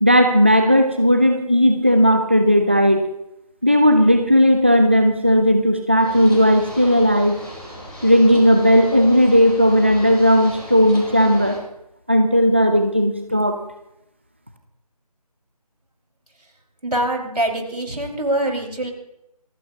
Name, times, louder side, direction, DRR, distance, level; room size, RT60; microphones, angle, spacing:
voice 1, 0.0-3.0 3.6-7.4 8.0-11.6 12.1-13.6, equal, 20° right, 6 dB, 0.5 m, -15 dB
sound 1, 6.0-11.5, equal, 5° left, 5.0 m, -37 dB
voice 2, 16.8-18.9, right 1 dB, 85° right, 1 dB, 5.0 m, -24 dB
27.5 x 15.0 x 2.8 m, 0.84 s
figure-of-eight pair, 170°, 20 cm